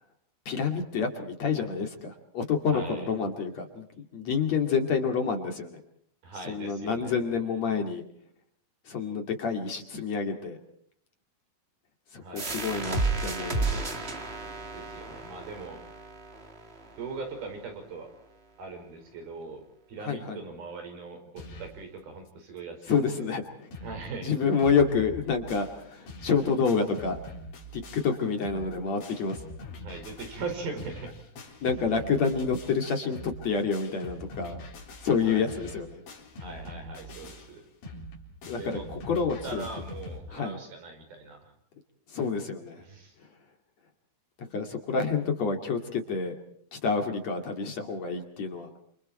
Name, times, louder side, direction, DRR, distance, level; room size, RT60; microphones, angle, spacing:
voice 1, 0.5-5.8 6.4-8.0 8.9-10.6 12.1-14.1 20.0-20.4 22.9-23.7 24.2-27.2 27.7-29.4 31.6-34.6 35.0-36.0 38.5-39.7 40.3-40.6 42.1-42.8 44.4-46.3 46.7-48.7, left 5 dB, 50° left, 4 dB, 3.4 m, -28 dB
voice 2, 2.7-3.1 6.2-7.2 12.2-12.6 14.7-15.8 17.0-18.1 18.6-19.6 19.9-22.9 23.2-23.3 23.8-24.3 29.8-31.1 31.4-31.7 35.2-35.6 36.4-37.6 38.6-38.8 39.1-41.5 42.8-43.2, right 4 dB, 75° right, 5 dB, 6.9 m, -40 dB
sound 1, 12.4-17.8, right 3 dB, 25° right, 1.4 m, -33 dB
sound 2, 21.4-21.8 22.3-22.4 22.6-22.7 23.2-23.3 23.5-24.1 24.3-40.2, left 1 dB, 70° left, 5.6 m, -44 dB
28.5 x 28.0 x 4.4 m, 0.63 s
omnidirectional pair, 4.4 m